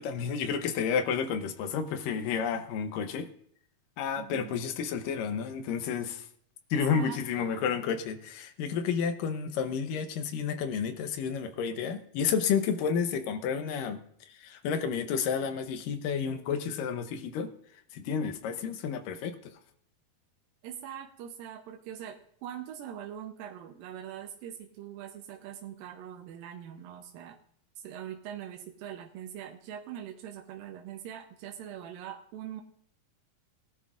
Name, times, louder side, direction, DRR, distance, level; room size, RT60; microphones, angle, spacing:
voice 1, 0.0-3.3 4.0-6.3 6.7-14.0 14.3-17.5 17.9-19.4, left 6 dB, 80° left, 8 dB, 2.4 m, -31 dB
voice 2, 4.2-4.6 6.9-7.8 20.6-27.4 27.8-32.6, right 10 dB, 85° right, 2 dB, 2.6 m, -42 dB
18.5 x 11.5 x 2.5 m, 0.66 s
omnidirectional pair, 4.0 m